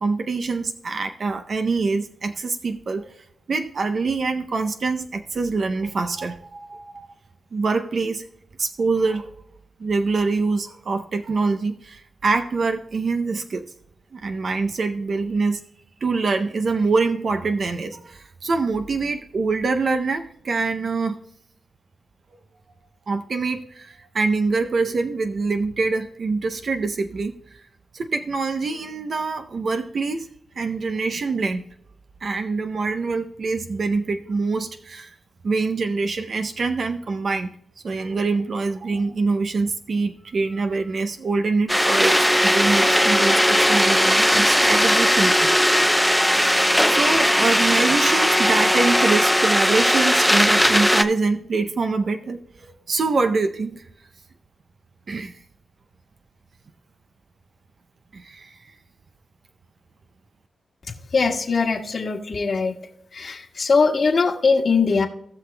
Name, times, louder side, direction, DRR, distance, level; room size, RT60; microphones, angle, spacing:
voice 1, 0.0-3.2 3.5-7.1 7.5-8.2 8.6-9.3 9.8-13.6 14.1-15.6 16.0-21.2 23.1-27.6 27.9-30.3 30.6-31.6 32.2-35.1 35.4-37.5 37.8-45.5 46.9-53.9 55.1-55.4 58.1-58.7, right 4 dB, 60° right, 7 dB, 0.6 m, -25 dB
sound 1, 41.7-51.0, equal, ahead, 0.6 m, -18 dB
voice 2, 60.9-62.7 63.1-65.1, left 4 dB, 55° left, 3 dB, 1.5 m, -21 dB
17.5 x 6.0 x 2.2 m, 0.72 s
cardioid pair, 55°, 0 cm